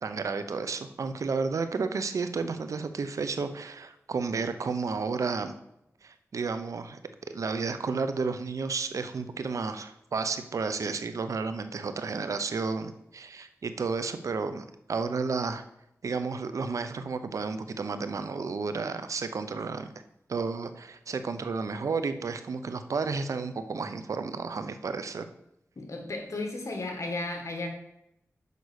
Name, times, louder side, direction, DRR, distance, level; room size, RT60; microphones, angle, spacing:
voice 1, 0.0-5.5 6.0-7.0 7.3-15.6 16.0-19.9 20.3-25.3, right 4 dB, 80° right, 10 dB, 0.7 m, -32 dB
voice 2, 25.8-27.7, left 2 dB, 65° left, 3 dB, 1.8 m, -34 dB
6.7 x 5.3 x 6.4 m, 0.81 s
cardioid pair, 60°, 5 cm